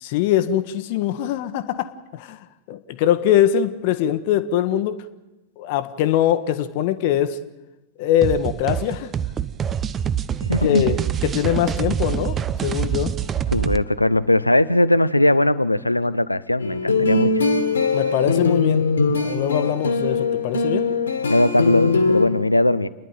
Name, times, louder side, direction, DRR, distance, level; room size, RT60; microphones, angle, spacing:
voice 1, 0.0-2.4 2.7-5.0 5.6-7.4 8.0-9.1 10.6-13.1 17.9-18.9 19.2-20.9, left 11 dB, 50° left, 11 dB, 1.2 m, -22 dB
sound 1, 8.2-13.8, right 9 dB, 25° right, 0.7 m, -25 dB
voice 2, 10.4-10.9 13.5-17.3 21.3-22.9, left 1 dB, 85° left, 14 dB, 0.7 m, -19 dB
sound 2, 16.6-22.3, left 3 dB, 70° left, 2.0 m, -21 dB
29.5 x 11.0 x 9.1 m, 1.0 s
figure-of-eight pair, 90°, 0 cm